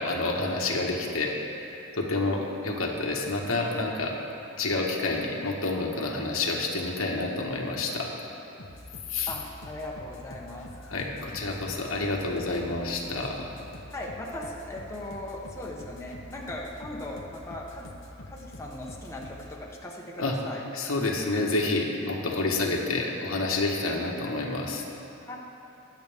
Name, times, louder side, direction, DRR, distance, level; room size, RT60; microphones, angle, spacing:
voice 1, 0.0-1.3 1.6-4.1 4.6-8.1 9.1-9.3 10.9-13.5 20.2-20.3 20.7-24.8, left 2 dB, 85° left, -1 dB, 1.5 m, -29 dB
sound 1, 8.6-19.6, left 1 dB, 65° left, 1.0 m, -46 dB
voice 2, 9.3-10.7 13.9-17.9 18.3-20.6 25.3-25.4, left 1 dB, 15° left, -3 dB, 1.3 m, -38 dB
21.5 x 8.1 x 3.6 m, 2.9 s
head